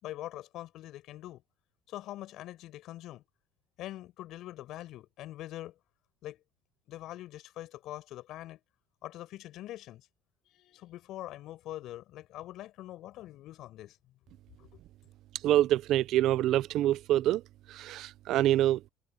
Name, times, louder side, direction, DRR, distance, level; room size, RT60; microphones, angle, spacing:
voice 1, 0.0-1.4 1.9-3.2 3.8-5.8 6.2-6.4 6.9-8.6 9.0-10.0 10.5-14.0 14.6-14.8, left 14 dB, 60° left, 7.4 m, -43 dB
voice 2, 15.4-17.4 17.7-18.8, right 13 dB, 60° right, 0.7 m, -26 dB
supercardioid pair, 105°, 0 cm